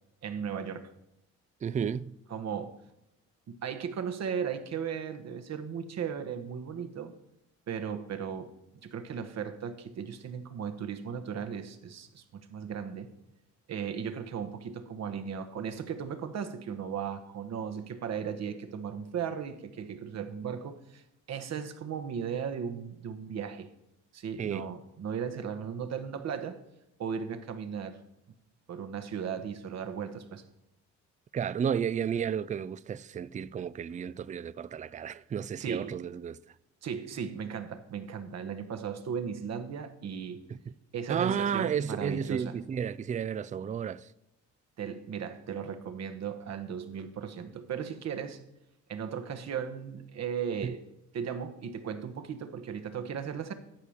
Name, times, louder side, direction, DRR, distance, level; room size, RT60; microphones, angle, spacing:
voice 1, 0.2-0.9 2.3-2.8 3.5-7.1 7.7-8.5 8.8-13.1 13.7-21.0 21.3-23.7 24.1-26.6 27.0-28.0 28.7-30.4 35.6-36.0 36.8-40.4 40.9-42.6 44.8-48.4 48.9-50.8 51.1-53.5, right 7 dB, 60° right, 1.2 m, -36 dB
voice 2, 1.6-2.1 24.4-24.7 31.3-36.4 40.5-40.6 41.1-44.1, right 7 dB, 25° right, 0.4 m, -32 dB
12.0 x 4.9 x 7.2 m
cardioid pair, 90°, 30 cm